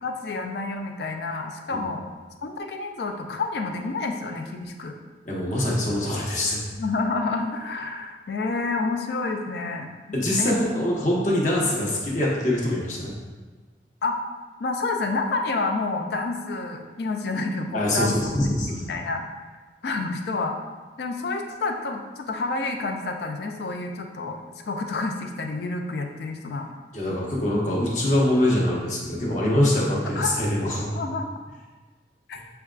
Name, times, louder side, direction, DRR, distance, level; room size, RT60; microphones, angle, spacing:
voice 1, 0.0-2.0 2.4-5.0 6.7-9.9 10.4-10.5 14.0-14.2 14.6-18.2 18.4-19.2 19.8-20.5 21.0-24.4 24.7-26.7 30.2-30.4 30.9-31.3 32.3-32.4, left 3 dB, 65° left, 3 dB, 0.4 m, -29 dB
voice 2, 5.2-6.6 10.1-13.1 17.7-18.8 26.9-30.9, left 1 dB, 45° left, -4 dB, 0.9 m, -24 dB
6.6 x 2.2 x 2.4 m, 1.3 s
head